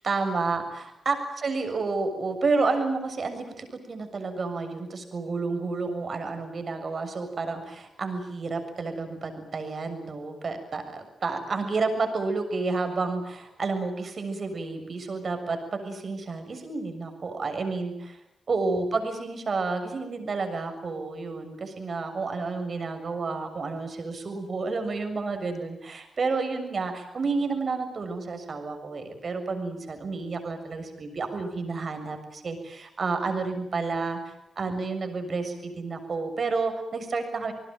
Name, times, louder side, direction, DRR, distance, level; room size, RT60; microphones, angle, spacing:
voice 1, 0.0-0.6 1.1-18.2 18.5-37.5, right 4 dB, 55° right, 6 dB, 6.9 m, -30 dB
28.5 x 19.5 x 9.1 m, 0.81 s
cardioid pair, 55°, 0 cm